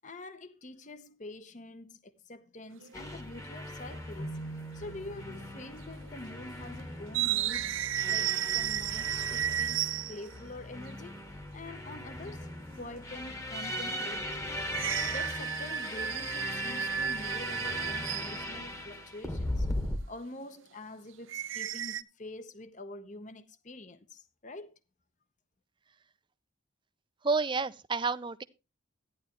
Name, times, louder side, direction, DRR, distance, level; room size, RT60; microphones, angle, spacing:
voice 1, 0.0-4.4 4.7-7.7 8.1-11.3 11.5-12.5 12.7-14.6 15.1-19.7 20.1-24.7, left 2 dB, 35° left, 0.8 m, -46 dB
sound 1, 2.7-3.0 4.2-4.3 5.3-5.7 5.9-6.1 7.1-10.4 14.7-18.5 21.3-22.0, right 10 dB, 70° right, 0.6 m, -33 dB
sound 2, 2.9-20.0, left 1 dB, 15° left, 1.2 m, -39 dB
Keyboard (musical), 4.2-6.0, right 3 dB, 65° left, 1.3 m, -44 dB
voice 2, 27.2-28.4, right 4 dB, 25° right, 0.5 m, -29 dB
14.0 x 10.5 x 3.0 m
head